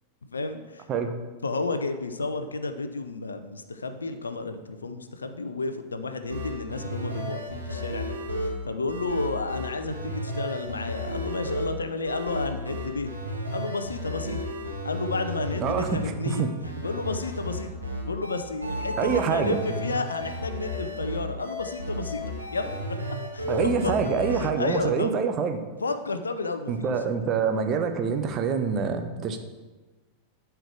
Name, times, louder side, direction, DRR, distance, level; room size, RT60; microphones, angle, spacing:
voice 1, 0.3-0.9 1.4-13.1 13.5-14.4 14.8-16.5 16.8-17.7 18.0-22.2 22.5-22.8 23.3-23.5 23.8-25.1 25.8-27.0, left 3 dB, 75° left, 9 dB, 0.6 m, -31 dB
sound 1, 6.2-24.4, equal, 80° right, 1.7 m, -33 dB
voice 2, 15.6-16.5 19.0-19.6 23.5-25.6 26.7-29.4, right 6 dB, 30° right, 6 dB, 0.9 m, -26 dB
11.5 x 4.6 x 4.7 m, 1.2 s
figure-of-eight pair, 90°, 0 cm